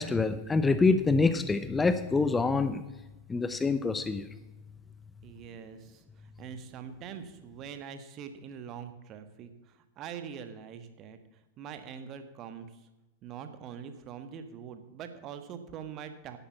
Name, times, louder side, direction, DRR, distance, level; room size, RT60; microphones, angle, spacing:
voice 1, 0.0-2.8 3.3-4.3, left 4 dB, 15° left, 10 dB, 0.7 m, -26 dB
voice 2, 5.2-6.0 6.4-9.5 10.0-11.2 11.6-12.7 13.2-16.4, right 7 dB, 35° right, 9 dB, 1.4 m, -43 dB
11.5 x 8.7 x 7.2 m, 1.0 s
figure-of-eight pair, 90°, 0 cm